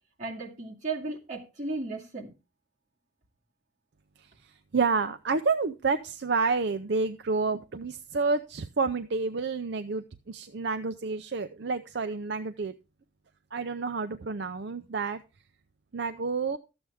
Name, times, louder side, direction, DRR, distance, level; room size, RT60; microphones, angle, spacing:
voice 1, 0.2-2.3, right 3 dB, 40° right, 2.3 m, -35 dB
voice 2, 4.7-12.7 13.5-15.2 15.9-16.6, right 4 dB, 60° right, 0.5 m, -29 dB
13.0 x 7.9 x 3.5 m
head